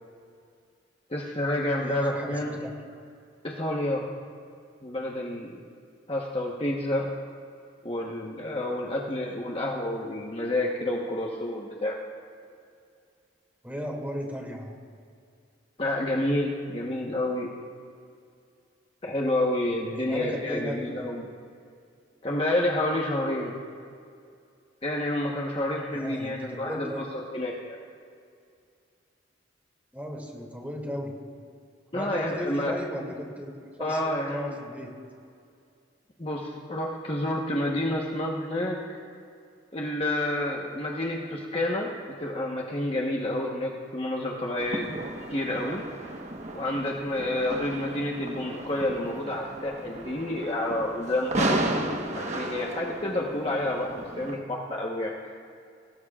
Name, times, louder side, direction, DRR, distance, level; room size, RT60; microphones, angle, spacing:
voice 1, 1.1-2.6 3.4-4.0 4.8-5.6 6.1-7.1 7.8-12.0 15.8-17.5 19.0-21.3 22.2-23.5 24.8-27.0 27.3-27.8 31.9-32.8 33.8-34.5 36.2-38.8 39.7-41.9 42.2-45.0 45.3-45.8 46.5-55.3, left 1 dB, 30° left, -2 dB, 1.2 m, -29 dB
voice 2, 1.8-2.7 13.6-14.7 19.9-21.1 25.9-27.1 29.9-31.1 31.9-34.9, equal, 10° right, -1 dB, 2.5 m, -36 dB
sound 1, 44.6-54.4, right 1 dB, 35° right, 1.2 m, -34 dB
25.5 x 18.5 x 2.5 m, 2.3 s
head